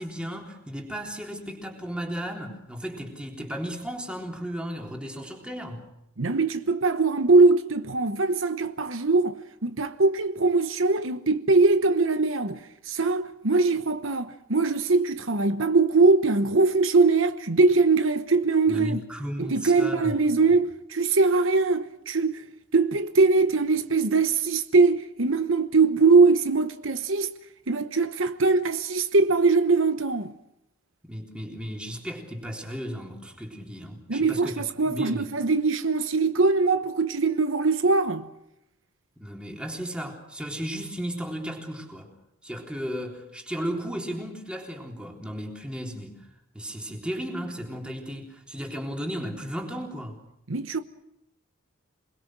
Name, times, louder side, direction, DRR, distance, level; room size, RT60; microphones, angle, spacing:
voice 1, 0.0-5.8 18.7-20.2 31.0-35.3 39.2-42.1 42.4-46.2 46.5-50.2, equal, 5° right, 3.7 m, -35 dB
voice 2, 6.2-12.6 12.9-19.0 19.4-22.4 22.7-27.3 27.7-30.3 34.1-38.3 50.5-50.8, right 3 dB, 70° right, 1.1 m, -22 dB
28.0 x 21.0 x 6.2 m
head